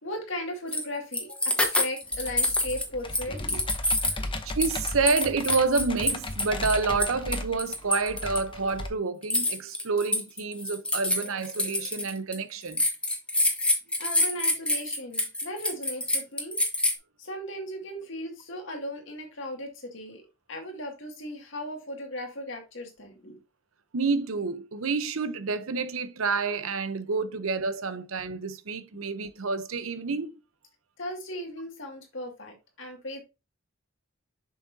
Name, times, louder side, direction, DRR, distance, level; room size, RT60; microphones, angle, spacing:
voice 1, 0.0-3.6 4.2-4.3 14.0-16.6 17.2-23.4 31.0-33.2, left 1 dB, 65° left, 2.1 m, -37 dB
sound 1, 0.7-0.8 1.1-2.8 3.1-4.2 4.6-8.4 9.2-12.3 12.7-16.9, left 1 dB, 5° left, 1.1 m, -26 dB
Computer keyboard, 2.1-8.9, left 2 dB, 25° left, 0.8 m, -36 dB
voice 2, 4.4-12.8 23.9-30.3, right 4 dB, 90° right, 0.8 m, -29 dB
6.8 x 6.2 x 2.7 m
head